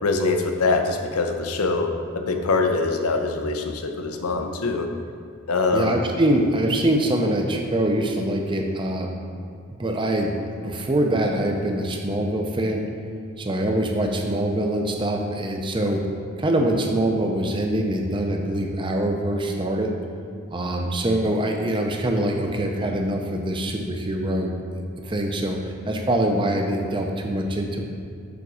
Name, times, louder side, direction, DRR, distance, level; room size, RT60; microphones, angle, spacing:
voice 1, 0.0-4.9 5.5-6.0, left 3 dB, 90° left, 5 dB, 0.6 m, -23 dB
voice 2, 5.7-9.1 9.8-10.3 10.6-12.8 13.4-16.0 16.4-19.9 20.5-27.8, right 1 dB, 20° right, 2 dB, 0.5 m, -24 dB
7.0 x 4.0 x 4.8 m, 2.4 s
head